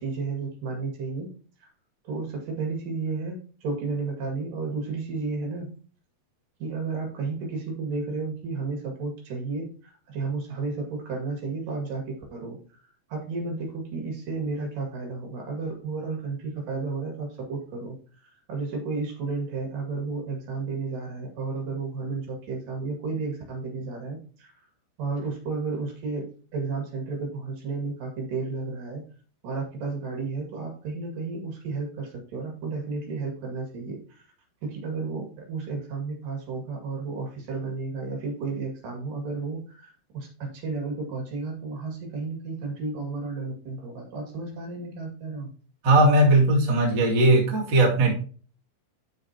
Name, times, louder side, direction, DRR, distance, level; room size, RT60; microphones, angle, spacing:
voice 1, 0.0-1.3 2.1-5.7 6.6-12.6 13.1-18.0 18.5-24.5 25.0-26.3 26.5-29.0 29.4-34.2 34.6-45.5, right 4 dB, 60° right, 1 dB, 3.7 m, -32 dB
voice 2, 45.8-48.1, right 2 dB, 35° right, -2 dB, 2.2 m, -19 dB
12.5 x 4.9 x 2.8 m, 0.40 s
omnidirectional pair, 4.7 m